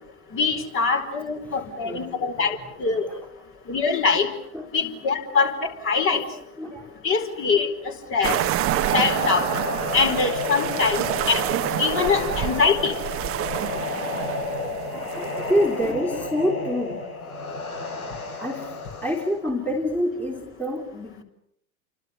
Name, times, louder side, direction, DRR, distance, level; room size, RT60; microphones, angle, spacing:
voice 1, 0.3-3.1 3.7-4.3 4.7-6.2 7.0-8.4 8.9-9.5 9.9-11.4 11.8-13.0, left 5 dB, 30° left, 5 dB, 4.7 m, -23 dB
voice 2, 1.3-3.3 4.5-4.7 6.1-6.9 12.6-12.8 14.1-17.0 18.3-21.2, equal, 5° left, 1 dB, 3.3 m, -29 dB
sound 1, 8.2-19.3, left 2 dB, 75° left, 4.3 m, -31 dB
sound 2, 8.2-15.9, right 14 dB, 30° right, 1.4 m, -28 dB
29.5 x 25.0 x 6.9 m, 0.73 s
figure-of-eight pair, 90°, 44 cm